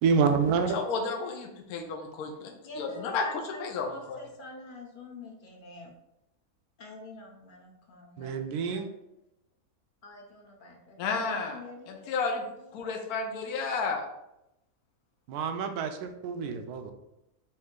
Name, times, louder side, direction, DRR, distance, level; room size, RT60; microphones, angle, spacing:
voice 1, 0.0-0.8 8.2-8.9 15.3-16.9, right 5 dB, 85° right, 7 dB, 1.1 m, -27 dB
voice 2, 0.7-2.5 2.8-4.2 11.0-11.6 11.9-12.4 12.7-14.1, left 4 dB, 75° left, 2 dB, 1.1 m, -32 dB
voice 3, 2.5-5.9 6.8-8.9 10.0-12.1 12.6-13.2, left 2 dB, 45° left, 1 dB, 0.7 m, -47 dB
4.4 x 2.8 x 3.6 m, 0.87 s
omnidirectional pair, 1.6 m